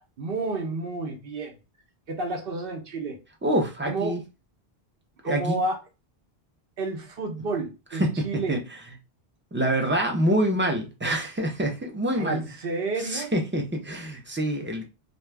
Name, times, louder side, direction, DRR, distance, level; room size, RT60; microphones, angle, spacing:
voice 1, 0.2-1.5 2.1-3.2 3.9-4.2 5.2-5.8 6.8-8.6 12.1-13.3, right 3 dB, 60° right, 1.0 m, -30 dB
voice 2, 3.4-4.2 5.2-5.6 7.9-8.6 9.5-12.4 13.0-14.8, right 1 dB, 15° right, 0.5 m, -26 dB
2.7 x 2.3 x 3.3 m
omnidirectional pair, 1.1 m